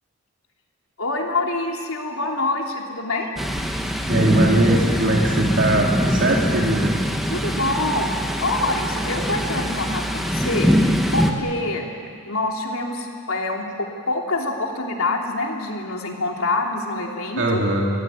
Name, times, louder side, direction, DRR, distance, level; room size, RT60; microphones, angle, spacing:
voice 1, 1.0-3.4 7.3-10.7 11.1-11.9 12.3-17.6, left 2 dB, 80° left, 1 dB, 3.2 m, -26 dB
Thunder, 3.4-11.3, equal, ahead, 1.4 m, -22 dB
voice 2, 4.1-6.9 17.4-17.9, right 1 dB, 60° right, -1 dB, 2.7 m, -21 dB
25.0 x 17.5 x 9.3 m, 2.3 s
head